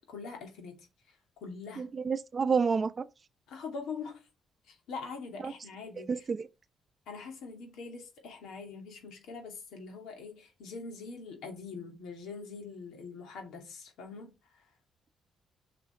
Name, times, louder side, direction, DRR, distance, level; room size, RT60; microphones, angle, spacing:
voice 1, 0.0-1.9 3.5-4.3 4.6-6.3 7.1-14.6, left 4 dB, 80° left, 2.6 m, -43 dB
voice 2, 1.8-3.0 5.4-5.5 6.0-6.5, right 5 dB, 35° right, 0.6 m, -29 dB
6.6 x 5.9 x 3.4 m
cardioid pair, 90°, 0 cm